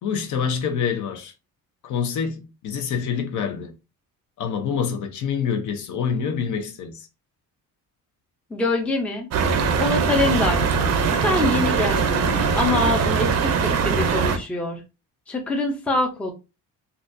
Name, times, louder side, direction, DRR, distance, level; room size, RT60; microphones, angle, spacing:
voice 1, 0.0-1.3 1.8-3.7 4.4-7.1, left 6 dB, 60° left, 0.7 m, -26 dB
voice 2, 8.5-9.3 9.8-10.6 11.2-12.2 12.5-14.8 15.3-16.3, left 2 dB, 5° left, 0.5 m, -24 dB
sound 1, 9.3-14.4, right 5 dB, 50° right, 0.6 m, -21 dB
4.0 x 2.3 x 2.5 m
cardioid pair, 175°, 34 cm